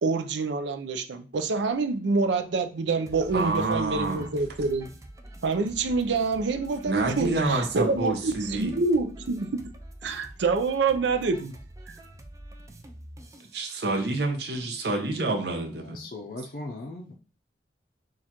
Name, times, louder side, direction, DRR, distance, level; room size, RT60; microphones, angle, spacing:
voice 1, 0.0-4.9 5.4-9.6 10.0-11.5 11.9-12.0, right 4 dB, 85° right, 0.5 m, -27 dB
sound 1, 3.1-13.6, right 1 dB, 20° right, 0.4 m, -46 dB
voice 2, 3.3-4.3 6.9-8.7 13.5-16.0, right 2 dB, 65° right, 0.8 m, -28 dB
voice 3, 13.9-14.3 15.5-17.1, left 2 dB, 55° left, 0.5 m, -40 dB
6.2 x 2.4 x 2.9 m
head